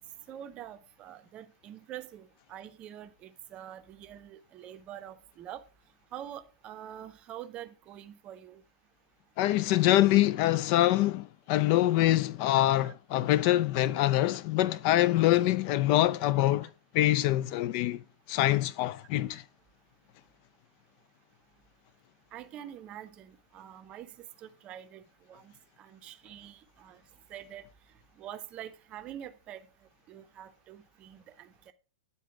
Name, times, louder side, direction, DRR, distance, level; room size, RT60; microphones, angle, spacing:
voice 1, 0.3-5.6 6.1-8.6 22.3-25.0 25.3-25.5 25.8-27.0 27.3-27.6 28.2-29.7 30.1-31.7, right 11 dB, 30° right, 0.6 m, -45 dB
voice 2, 9.4-16.7 16.9-18.0 18.3-19.4, left 14 dB, 40° left, 0.3 m, -25 dB
9.3 x 4.0 x 4.6 m
figure-of-eight pair, 100°, 4 cm